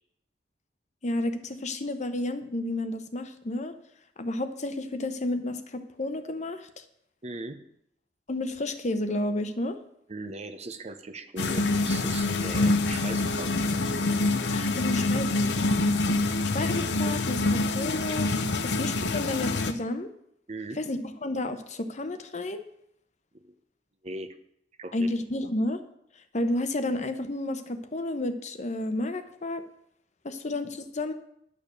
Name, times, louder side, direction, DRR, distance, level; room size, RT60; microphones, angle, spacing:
voice 1, 1.0-3.7 4.2-6.7 8.3-9.8 14.5-16.0 16.5-18.3 18.6-20.1 20.8-22.6 24.9-25.8 26.3-29.6 30.2-31.1, left 1 dB, 45° left, 9 dB, 0.9 m, -31 dB
voice 2, 7.2-7.6 10.1-13.6 20.5-20.8 23.3-23.5 24.0-24.4 24.8-25.1, right 2 dB, 40° right, 9 dB, 0.8 m, -39 dB
sound 1, 11.4-19.7, left 2 dB, 80° left, 0.8 m, -26 dB
10.5 x 6.9 x 6.8 m, 0.73 s
head